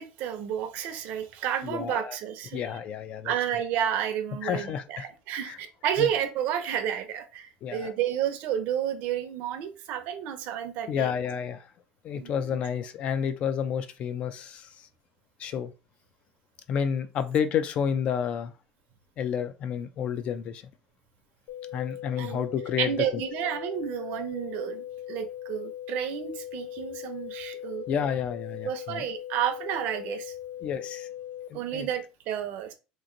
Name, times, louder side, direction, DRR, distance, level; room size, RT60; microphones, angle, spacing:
voice 1, 0.0-2.6 3.2-11.1 12.2-12.3 22.2-22.4 22.8-27.9 28.6-30.3 31.5-32.7, right 9 dB, 60° right, 0.7 m, -31 dB
voice 2, 1.6-2.2 2.5-3.3 4.4-5.1 5.4-5.6 6.0-6.1 7.6-7.9 10.9-11.7 12.0-14.9 15.4-15.7 16.7-18.5 19.2-20.7 21.7-23.2 27.9-29.1 30.6-31.1 31.5-31.9, left 8 dB, 40° left, 0.4 m, -30 dB
sound 1, 21.5-31.5, left 11 dB, 65° left, 0.7 m, -39 dB
3.0 x 2.5 x 3.8 m
cardioid pair, 155°, 3 cm